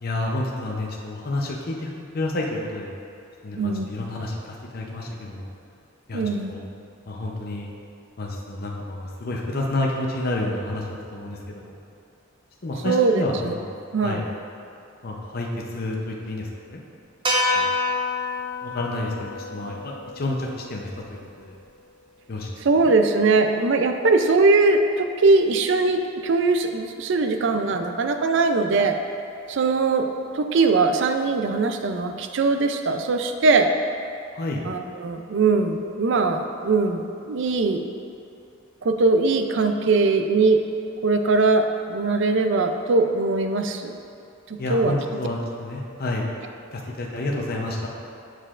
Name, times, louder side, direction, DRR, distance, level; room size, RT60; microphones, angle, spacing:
voice 1, 0.0-2.9 3.4-5.5 6.1-6.6 7.1-7.7 8.2-11.8 12.6-13.7 14.0-14.3 15.0-16.8 17.5-17.7 18.6-21.5 22.3-22.9 34.3-34.6 44.6-46.3 46.7-47.9, left 2 dB, 50° left, -1 dB, 0.7 m, -30 dB
voice 2, 3.6-3.9 6.1-6.5 12.8-13.5 13.9-14.2 22.6-29.0 29.5-30.1 30.4-33.7 34.7-37.8 38.8-40.6 41.0-43.9 44.7-44.9, right 3 dB, 65° right, 6 dB, 0.4 m, -21 dB
sound 1, 17.2-21.6, left 2 dB, 25° right, 0.7 m, -28 dB
7.6 x 6.5 x 2.5 m, 2.6 s
head